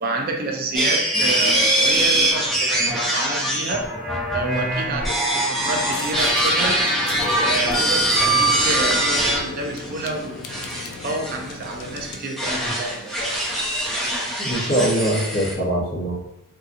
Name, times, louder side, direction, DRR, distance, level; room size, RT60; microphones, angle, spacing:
voice 1, 0.0-3.9 4.3-6.9 7.4-10.4 11.0-13.2, right 3 dB, 45° right, 2 dB, 0.3 m, -28 dB
sound 1, 0.7-9.4 9.8-10.1 10.5-15.5, right 1 dB, ahead, 0.7 m, -22 dB
sound 2, 5.6-12.2, left 4 dB, 75° left, 0.3 m, -36 dB
voice 2, 14.4-16.1, right 1 dB, 40° left, -9 dB, 0.9 m, -22 dB
2.8 x 2.3 x 2.5 m, 0.82 s
head